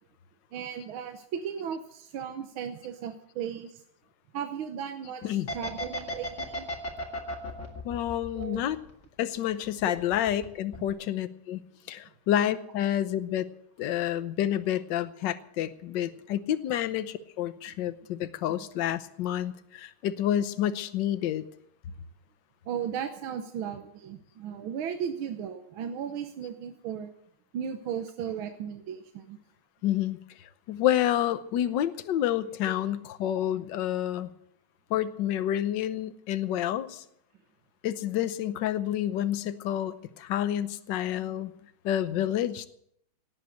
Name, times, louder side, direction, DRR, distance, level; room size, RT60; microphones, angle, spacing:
voice 1, 0.5-3.8 4.3-6.7 8.3-8.6 9.9-10.0 22.7-27.1 27.5-29.4, right 8 dB, 75° right, 7 dB, 1.7 m, -36 dB
sound 1, 5.5-9.2 9.5-10.4 10.7-10.9, left 1 dB, 35° left, 2.6 m, -35 dB
voice 2, 7.8-8.8 9.2-11.6 11.9-13.5 13.8-21.5 29.8-34.3 34.9-37.0 37.8-41.5 41.8-42.7, left 11 dB, 65° left, 13 dB, 1.4 m, -29 dB
17.5 x 8.4 x 7.8 m, 0.73 s
omnidirectional pair, 2.3 m